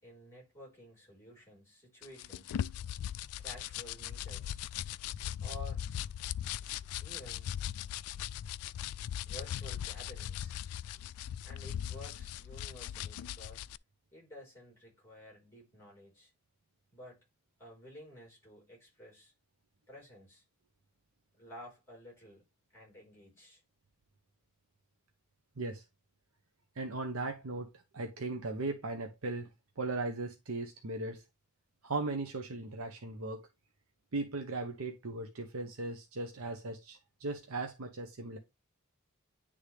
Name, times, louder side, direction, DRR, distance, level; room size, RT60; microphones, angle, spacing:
voice 1, 0.0-2.6 3.4-4.6 5.4-5.9 7.0-7.5 9.2-10.6 11.4-13.7 14.1-16.3 16.9-17.2 17.6-19.3 19.9-20.4 21.3-22.4 22.7-23.6, equal, 10° left, 4.2 m, -52 dB
sound 1, 2.0-13.8, left 10 dB, 90° left, 0.3 m, -39 dB
voice 2, 26.7-31.2 31.8-33.5 34.1-38.4, right 2 dB, 75° right, 0.8 m, -38 dB
9.9 x 3.5 x 3.3 m
head